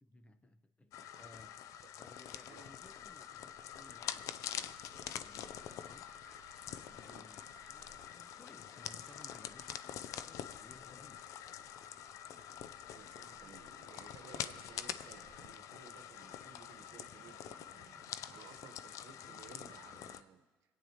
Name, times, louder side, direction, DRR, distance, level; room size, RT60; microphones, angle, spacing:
voice 1, 0.0-1.6 2.0-6.1 6.7-11.3, left 2 dB, 20° left, 9 dB, 0.9 m, -60 dB
sound 1, 0.9-20.2, left 10 dB, 70° left, 0.5 m, -46 dB
sound 2, 2.1-20.1, right 3 dB, 55° right, 1.5 m, -67 dB
Laughter, 3.8-14.1, right 2 dB, 15° right, 2.0 m, -69 dB
voice 2, 12.9-20.4, right 7 dB, 75° right, 7 dB, 1.1 m, -58 dB
26.0 x 9.1 x 3.0 m, 1.3 s
supercardioid pair, 65°, 6 cm